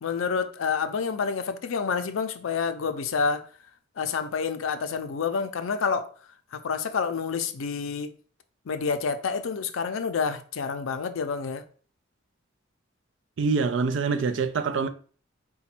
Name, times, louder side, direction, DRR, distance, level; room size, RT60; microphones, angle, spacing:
voice 1, 0.0-3.5 4.0-6.1 6.5-8.1 8.7-11.6, left 5 dB, 90° left, 0.5 m, -28 dB
voice 2, 13.4-14.9, right 4 dB, 65° right, 0.4 m, -25 dB
4.1 x 2.2 x 4.3 m
head